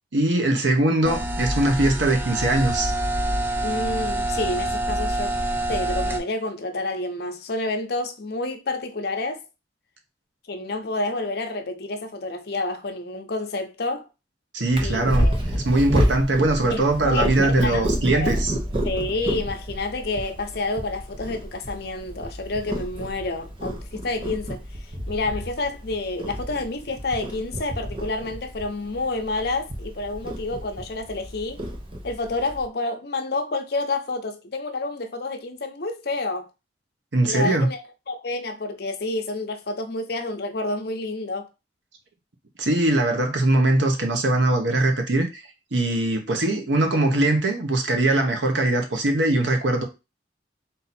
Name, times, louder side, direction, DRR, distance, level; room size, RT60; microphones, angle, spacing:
voice 1, 0.1-2.9 14.5-15.3 15.5-18.5 37.1-37.7 42.6-45.4 45.7-49.8, right 2 dB, 85° right, 1.0 m, -21 dB
sound 1, 1.0-6.2, right 1 dB, 10° right, 0.6 m, -26 dB
voice 2, 3.6-5.4 5.7-9.4 10.5-14.1 14.8-15.4 16.7-18.4 18.8-24.6 25.1-31.6 32.0-36.5 37.2-41.5, left 2 dB, 60° left, 0.7 m, -29 dB
Purr, 14.7-32.6, equal, 30° right, 0.9 m, -29 dB
3.8 x 2.8 x 4.2 m
head